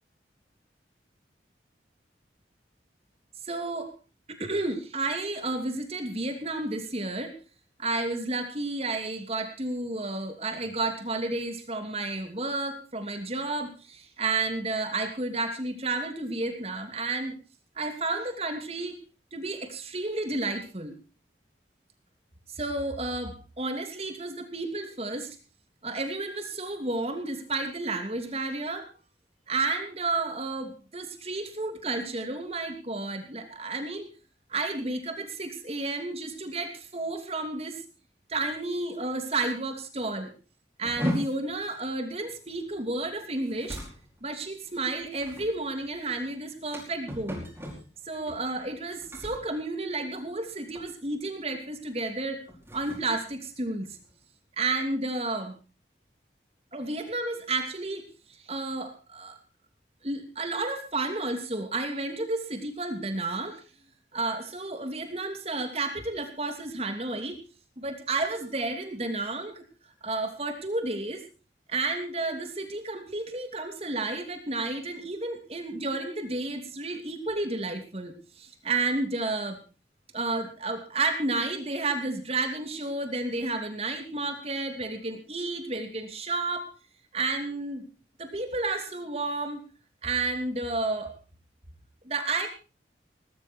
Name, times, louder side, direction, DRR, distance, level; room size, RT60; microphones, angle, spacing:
voice 1, 3.4-3.9 4.3-7.3 7.8-17.3 17.8-19.0 19.3-21.0 22.5-25.4 25.8-28.9 29.5-34.1 34.5-37.8 38.3-40.3 40.8-43.8 44.2-47.4 48.1-52.4 52.7-53.9 54.6-55.5 56.7-58.0 58.4-59.4 60.0-63.6 64.1-67.4 67.8-69.6 70.0-71.3 71.7-79.6 80.1-86.7 87.1-87.8 88.2-89.6 90.0-91.1 92.0-92.5, right 2 dB, 35° right, 6 dB, 2.7 m, -31 dB
sound 1, 40.8-50.5 50.7-51.1 51.5-51.8 52.3-54.2, equal, 15° right, 5.2 m, -39 dB
20.0 x 13.0 x 4.5 m, 0.35 s
head